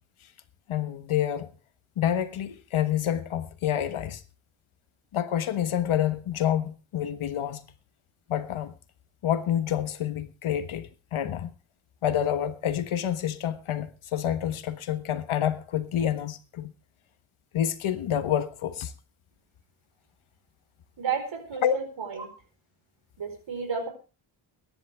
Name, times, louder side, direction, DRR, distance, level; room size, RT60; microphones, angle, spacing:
voice 1, 0.7-1.5 2.0-4.2 5.1-7.7 8.3-8.7 9.2-11.5 12.0-16.7 17.5-18.9 21.6-21.8, left 10 dB, 75° left, 1.4 m, -28 dB
voice 2, 21.0-22.3 23.2-23.9, right 6 dB, 65° right, 4.6 m, -32 dB
22.0 x 10.5 x 3.5 m
wide cardioid pair, 115°, 49 cm